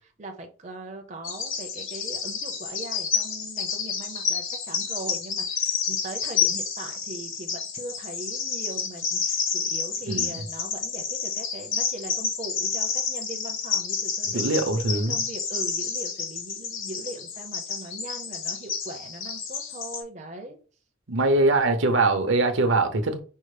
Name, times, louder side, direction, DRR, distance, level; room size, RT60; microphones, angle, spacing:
voice 1, 0.2-20.6, right 2 dB, 35° right, 0.6 m, -40 dB
Bird vocalization bird call bird song, 1.2-20.0, left 6 dB, 80° left, 1.3 m, -30 dB
voice 2, 10.1-10.4 14.3-15.2 21.1-23.2, right 2 dB, 70° right, 0.8 m, -22 dB
5.4 x 2.0 x 4.9 m
head